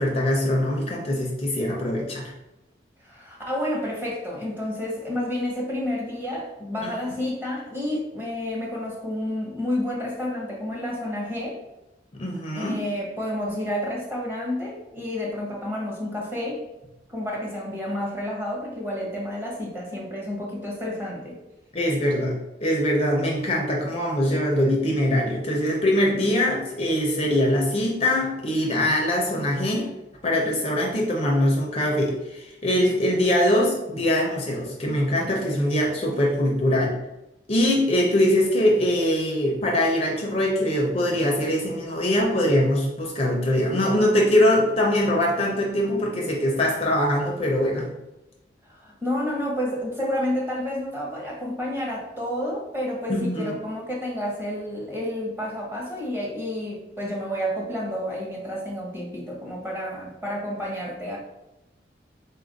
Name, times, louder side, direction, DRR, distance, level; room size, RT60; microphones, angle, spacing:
voice 1, 0.0-2.3 6.8-6.9 12.1-12.8 21.7-29.9 30.2-37.0 37.5-47.9 53.1-53.6, left 1 dB, 35° left, -1 dB, 0.5 m, -22 dB
voice 2, 3.0-11.6 12.5-16.6 17.1-21.4 48.7-61.2, left 1 dB, 10° right, -3 dB, 0.9 m, -30 dB
3.8 x 2.4 x 3.9 m, 0.95 s
head